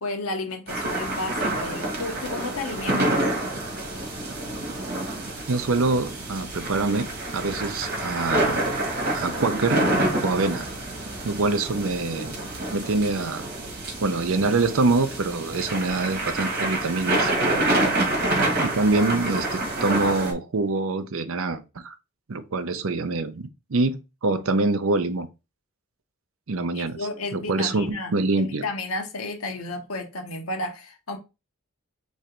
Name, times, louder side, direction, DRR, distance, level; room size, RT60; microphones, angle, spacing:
voice 1, 0.0-3.3 26.7-31.2, left 2 dB, 85° left, 1.1 m, -32 dB
sound 1, 0.7-20.3, right 1 dB, 45° right, 1.5 m, -27 dB
voice 2, 5.5-7.1 7.3-8.6 9.1-9.9 10.2-10.7 11.2-12.3 12.7-13.5 14.0-17.8 18.6-21.9 22.3-25.3 26.5-27.0 27.3-28.6, right 3 dB, 70° right, 0.6 m, -25 dB
3.8 x 3.1 x 4.4 m
head